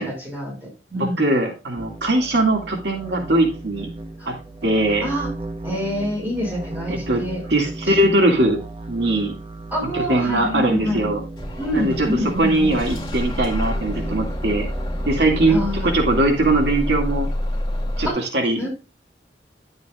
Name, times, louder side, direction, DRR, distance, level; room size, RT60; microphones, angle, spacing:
voice 1, 0.0-1.3 4.2-4.3 5.0-5.3 5.6-7.4 9.7-11.1 11.6-12.8 15.5-15.9 18.1-18.2 18.6-18.7, left 1 dB, 10° right, -2 dB, 5.8 m, -26 dB
voice 2, 1.2-3.9 4.3-4.4 4.6-5.1 6.9-7.2 7.5-8.6 8.9-9.3 9.9-11.2 11.7-12.1 12.4-14.7 15.1-17.3 18.0-18.7, right 1 dB, 80° right, 2 dB, 2.3 m, -20 dB
sound 1, 1.8-15.9, right 2 dB, 30° right, 1.1 m, -35 dB
Bus / Engine starting, 11.4-18.1, left 1 dB, 25° left, 2.6 m, -27 dB
11.0 x 8.0 x 2.4 m, 0.30 s
head